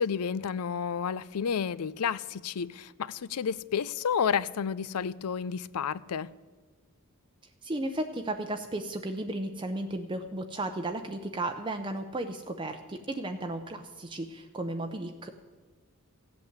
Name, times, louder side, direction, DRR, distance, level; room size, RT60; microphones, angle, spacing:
voice 1, 0.0-6.3, left 7 dB, 80° left, 0.5 m, -31 dB
voice 2, 7.6-15.3, right 1 dB, 20° right, 0.7 m, -34 dB
15.5 x 8.4 x 8.0 m
head